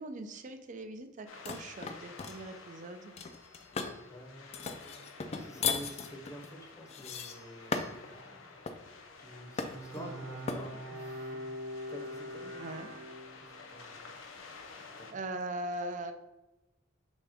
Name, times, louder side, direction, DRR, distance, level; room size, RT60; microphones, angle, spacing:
voice 1, 0.0-3.1 10.0-10.1 12.6-12.9 15.1-16.1, right 1 dB, 40° right, 8 dB, 0.4 m, -40 dB
sound 1, 1.3-15.1, left 4 dB, 85° left, 0.6 m, -52 dB
sound 2, 1.5-2.4 3.2-4.0 4.5-8.1 8.7-8.9 9.6-10.0 10.5-10.7, left 5 dB, 35° left, 0.3 m, -37 dB
voice 2, 4.1-5.0 5.4-7.8 8.1-8.6 9.2-11.5 11.9-12.6 13.4-14.0 15.0-15.2, equal, 15° left, 2 dB, 0.7 m, -48 dB
Bowed string instrument, 9.3-13.7, equal, 85° right, 0.8 m, -43 dB
6.2 x 2.3 x 3.4 m, 1.0 s
head